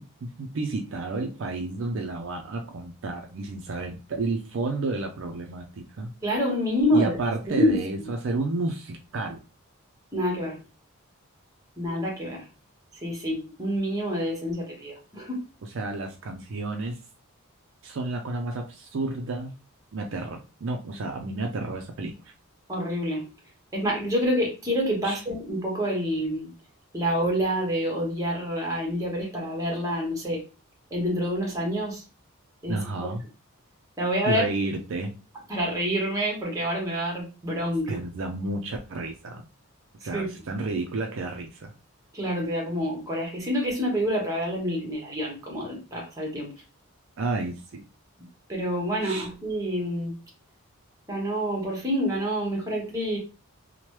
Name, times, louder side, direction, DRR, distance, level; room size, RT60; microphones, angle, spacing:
voice 1, 0.2-6.1 6.9-9.4 15.7-17.0 17.8-19.5 19.9-22.1 25.0-25.2 32.7-33.2 34.3-35.1 37.9-39.5 40.0-41.7 47.2-47.8 49.0-49.3, right 3 dB, 60° right, 2 dB, 0.4 m, -31 dB
voice 2, 6.2-7.1 7.5-8.1 10.1-10.6 11.8-12.5 13.0-15.4 22.7-23.3 23.7-26.5 26.9-30.4 30.9-32.0 32.6-32.8 34.0-34.5 35.5-38.0 40.1-40.3 42.1-46.5 48.5-50.1 51.1-53.2, equal, 15° right, -1 dB, 0.9 m, -27 dB
3.0 x 2.1 x 3.1 m, 0.32 s
head